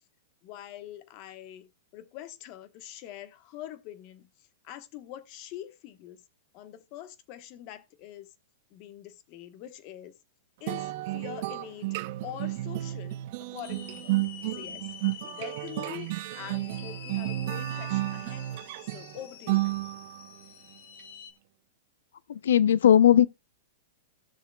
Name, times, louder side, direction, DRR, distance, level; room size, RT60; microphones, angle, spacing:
voice 1, 0.4-4.3 4.6-6.2 6.5-8.3 8.7-10.1 10.6-11.9 12.2-14.1 14.5-14.9 15.2-18.5 18.8-19.8, left 12 dB, 35° left, 1.1 m, -44 dB
sound 1, 10.7-20.3, right 17 dB, 45° right, 0.6 m, -32 dB
sound 2, 13.6-21.3, left 9 dB, 60° left, 1.2 m, -47 dB
voice 2, 22.3-23.3, left 10 dB, 85° left, 0.5 m, -18 dB
15.5 x 6.7 x 2.3 m
supercardioid pair, 155°, 0 cm